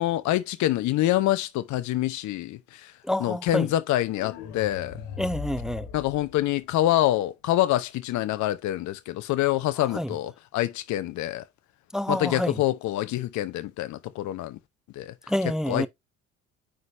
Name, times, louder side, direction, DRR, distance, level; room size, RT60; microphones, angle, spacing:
voice 1, 0.0-2.9 3.2-5.0 5.9-11.4 12.1-14.6 15.0-15.1 15.7-15.9, left 14 dB, 50° left, 0.9 m, -26 dB
voice 2, 3.0-3.7 5.2-5.9 9.9-10.1 11.9-12.5 15.3-15.9, left 1 dB, ahead, 0.6 m, -27 dB
sound 1, 4.0-7.0, left 7 dB, 65° left, 2.0 m, -39 dB
9.4 x 5.1 x 2.6 m
figure-of-eight pair, 60°, 38 cm